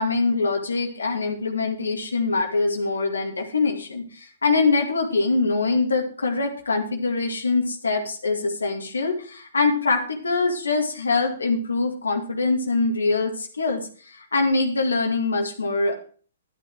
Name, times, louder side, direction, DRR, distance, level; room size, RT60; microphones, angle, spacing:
voice 1, 0.0-15.9, left 3 dB, 90° left, 3 dB, 2.1 m, -24 dB
11.0 x 8.9 x 4.6 m, 0.42 s
hypercardioid pair, 135°, 0 cm